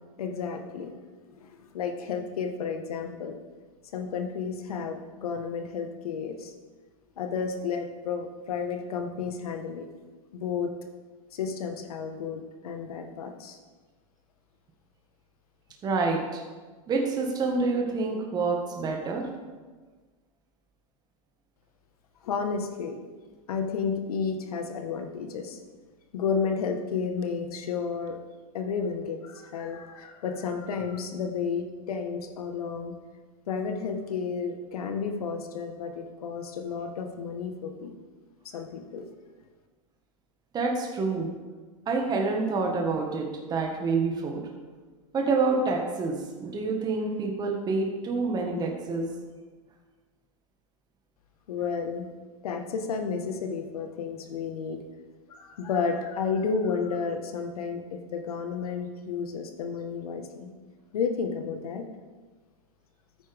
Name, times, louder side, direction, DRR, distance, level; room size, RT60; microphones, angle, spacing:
voice 1, 0.2-0.9 1.3-1.5 1.7-3.4 3.9-6.5 7.2-9.9 10.3-10.7 11.3-13.6 22.2-23.0 23.5-25.6 26.1-28.2 28.5-32.9 33.5-37.9 38.4-39.0 51.5-52.1 52.4-54.8 55.3-60.5 60.9-61.8, left 5 dB, 80° left, 5 dB, 1.5 m, -32 dB
voice 2, 15.8-16.4 16.9-19.2 40.5-41.3 41.9-44.4 45.1-49.1, right 3 dB, 20° right, 2 dB, 1.6 m, -27 dB
13.5 x 9.2 x 3.6 m, 1.4 s
hypercardioid pair, 135°, 19 cm